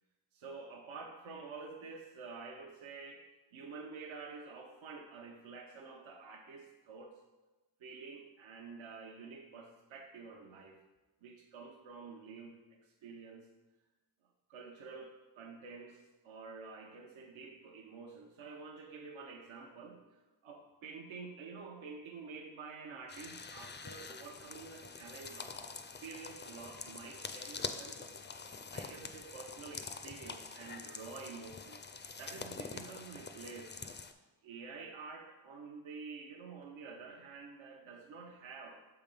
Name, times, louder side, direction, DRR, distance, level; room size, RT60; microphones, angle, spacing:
voice 1, 0.3-7.2 7.8-10.8 11.2-13.5 14.5-28.2 28.7-31.8 32.2-33.7 34.4-38.8, right 4 dB, 70° right, 1 dB, 0.8 m, -49 dB
sound 1, 23.1-34.1, left 4 dB, 25° left, 0.4 m, -46 dB
6.6 x 3.5 x 5.3 m, 1.1 s
cardioid pair, 70°, 49 cm